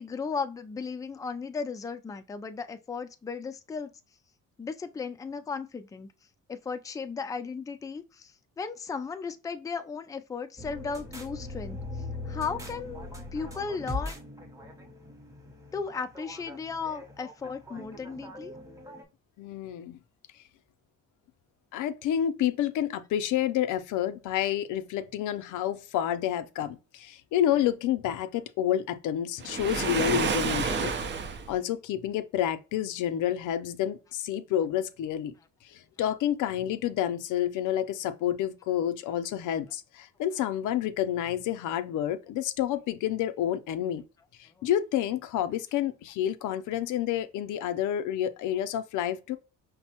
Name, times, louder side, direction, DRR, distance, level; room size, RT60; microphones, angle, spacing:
voice 1, 0.0-3.9 4.6-6.1 6.5-14.1 15.7-18.5, left 5 dB, 10° left, 0.3 m, -36 dB
sound 1, 10.6-19.0, left 2 dB, 10° right, 0.8 m, -40 dB
voice 2, 19.4-20.0 21.7-30.9 31.5-35.3 35.7-44.0 44.4-49.4, left 11 dB, 80° left, 0.5 m, -29 dB
Waves surf, 29.4-31.5, right 5 dB, 40° right, 0.5 m, -29 dB
5.2 x 2.0 x 2.8 m
cardioid pair, 90°, 30 cm